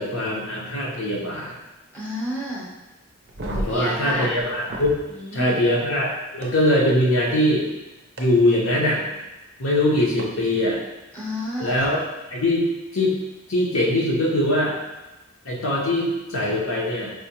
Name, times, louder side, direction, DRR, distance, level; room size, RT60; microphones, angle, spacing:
voice 1, 0.0-1.5 3.4-4.9 5.3-7.7 8.2-9.0 9.6-10.8 11.6-12.7 12.9-13.1 13.5-14.7 15.4-17.1, left 1 dB, 70° left, -4 dB, 0.8 m, -22 dB
voice 2, 1.9-2.7 3.5-4.3 5.1-5.6 11.1-12.0, equal, 10° left, -8 dB, 0.7 m, -31 dB
sound 1, 3.2-5.0 6.4-6.5 8.2-8.3 10.2-10.3 11.7-11.8, right 1 dB, 50° right, 0.5 m, -33 dB
4.8 x 2.1 x 2.8 m, 1.1 s
head